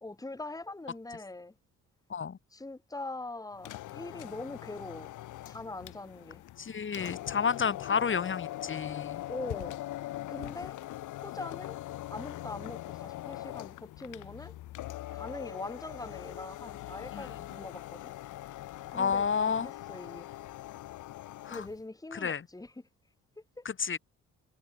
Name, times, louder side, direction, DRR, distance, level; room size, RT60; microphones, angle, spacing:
voice 1, 0.0-1.5 2.5-5.1 5.5-6.4 9.3-9.8 10.3-10.8 11.2-11.8 12.1-14.5 15.1-18.1 18.9-20.3 21.5-22.7 23.6-23.7, left 2 dB, 10° left, 2.4 m, -42 dB
sound 1, 3.5-21.8, left 15 dB, 85° left, 1.9 m, -42 dB
voice 2, 6.6-9.2 17.1-17.3 18.9-19.7 21.4-21.6 22.1-22.5 23.6-24.0, left 6 dB, 40° left, 2.9 m, -31 dB
cardioid pair, 90°, 30 cm